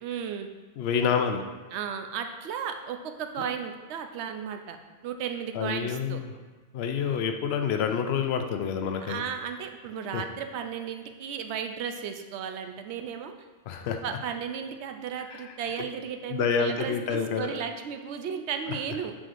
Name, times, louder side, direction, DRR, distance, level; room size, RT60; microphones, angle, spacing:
voice 1, 0.0-0.5 1.7-4.8 5.0-6.2 9.0-13.3 14.0-19.2, right 7 dB, 70° right, 6 dB, 0.8 m, -34 dB
voice 2, 0.8-1.4 5.5-6.3 6.7-9.2 10.1-10.2 13.7-14.0 15.3-15.4 16.3-17.5, left 7 dB, 65° left, 5 dB, 0.8 m, -28 dB
7.4 x 4.9 x 2.6 m, 1.4 s
omnidirectional pair, 1.2 m